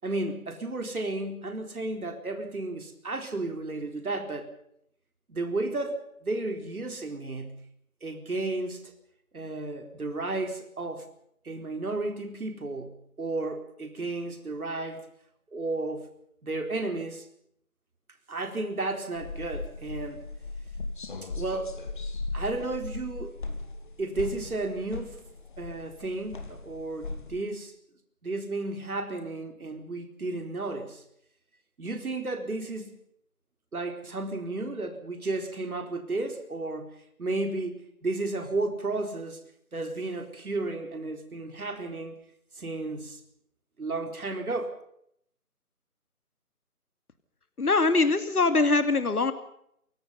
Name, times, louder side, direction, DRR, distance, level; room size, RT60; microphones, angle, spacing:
voice 1, 0.0-4.5 5.3-7.7 8.0-8.9 9.3-11.1 11.4-15.0 15.5-16.1 16.4-17.3 18.3-20.2 21.2-21.8 22.3-23.4 24.0-25.2 25.6-27.7 28.2-31.0 31.8-33.0 33.7-36.9 37.2-39.4 39.7-42.2 42.5-43.2 43.8-44.8, right 2 dB, 70° right, 6 dB, 4.4 m, -33 dB
sound 1, 19.2-27.4, left 3 dB, 35° left, 2.6 m, -38 dB
voice 2, 47.6-49.3, left 3 dB, 75° left, 10 dB, 2.6 m, -23 dB
28.5 x 17.0 x 5.5 m, 0.71 s
figure-of-eight pair, 170°, 45 cm